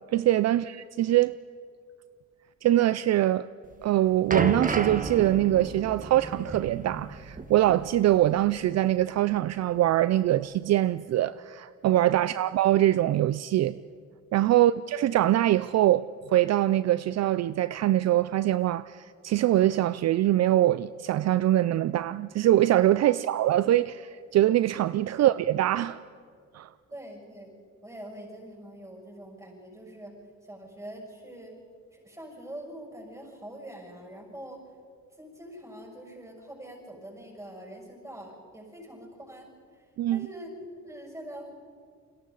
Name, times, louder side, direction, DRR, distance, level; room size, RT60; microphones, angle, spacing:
voice 1, 0.1-1.4 2.6-3.5 3.8-13.8 14.3-26.0 26.5-26.7 40.0-40.3, right 13 dB, 60° right, 0.5 m, -23 dB
sound 1, 3.7-8.6 8.8-9.0 9.7-9.8, right 3 dB, 25° right, 1.4 m, -33 dB
voice 2, 26.9-27.5 27.8-30.2 30.5-31.5 31.9-34.6 35.2-39.5 40.1-41.5, right 1 dB, 10° right, 6.9 m, -44 dB
30.0 x 21.5 x 4.0 m
cardioid pair, 90°, 30 cm